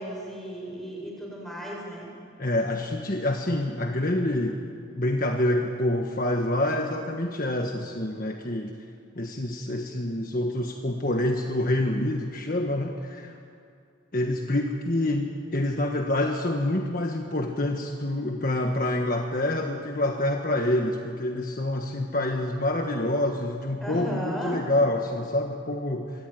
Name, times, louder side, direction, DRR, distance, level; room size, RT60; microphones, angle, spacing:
voice 1, 0.0-2.1 23.8-24.6, right 1 dB, ahead, -2 dB, 7.0 m, -35 dB
voice 2, 2.4-4.6 5.0-8.7 9.1-13.3 14.1-26.3, left 1 dB, 45° left, 3 dB, 1.5 m, -27 dB
25.5 x 22.5 x 9.4 m, 2.4 s
head